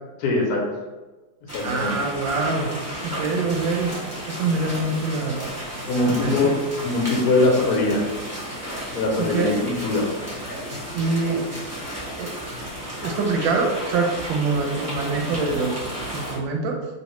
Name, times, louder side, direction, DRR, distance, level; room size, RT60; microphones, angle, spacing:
voice 1, 0.2-0.6 1.5-2.0 5.9-6.5 6.8-8.0 8.9-10.0 10.4-10.6, left 2 dB, 65° left, -2 dB, 1.0 m, -22 dB
sound 1, 1.5-16.4, equal, 15° right, 0.6 m, -33 dB
voice 2, 1.6-2.7 3.0-3.9 4.3-5.4 6.1-6.5 9.2-9.6 10.9-11.4 12.2-12.3 13.0-15.8 16.1-16.8, right 3 dB, 90° right, 2 dB, 1.4 m, -24 dB
3.1 x 2.7 x 3.0 m, 1.2 s
omnidirectional pair, 2.0 m